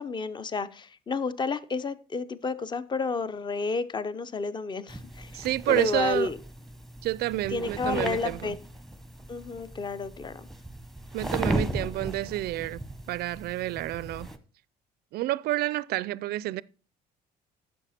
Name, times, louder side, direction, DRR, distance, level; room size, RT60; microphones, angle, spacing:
voice 1, 0.0-6.4 7.5-8.6 9.3-10.5, left 4 dB, 25° left, 0.7 m, -31 dB
sound 1, 4.9-14.4, right 1 dB, ahead, 0.9 m, -36 dB
voice 2, 5.3-6.3 7.0-8.6 11.1-12.8 13.1-14.3 15.1-16.6, right 16 dB, 70° right, 0.4 m, -29 dB
10.0 x 6.9 x 4.2 m
cardioid pair, 110°, 17 cm